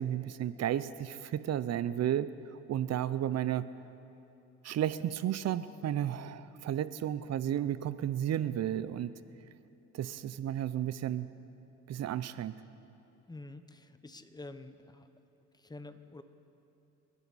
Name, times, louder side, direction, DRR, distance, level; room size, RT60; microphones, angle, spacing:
voice 1, 0.0-2.3 2.7-3.7 4.6-9.1 9.9-11.3 11.9-12.6, right 11 dB, 60° right, 15 dB, 0.6 m, -33 dB
voice 2, 13.3-15.1 15.5-16.2, left 2 dB, 15° left, 10 dB, 0.9 m, -48 dB
28.0 x 11.0 x 4.1 m, 2.9 s
cardioid pair, 90°, 30 cm